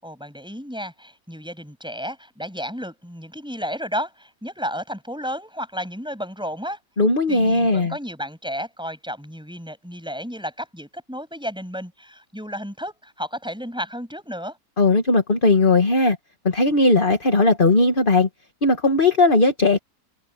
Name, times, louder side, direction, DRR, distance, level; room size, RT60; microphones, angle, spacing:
voice 1, 0.0-6.8 7.3-14.6, equal, ahead, 7.8 m, -32 dB
voice 2, 7.0-7.9 14.8-16.2 16.4-18.3 18.6-19.8, left 2 dB, 30° left, 2.0 m, -18 dB
omnidirectional pair, 1.9 m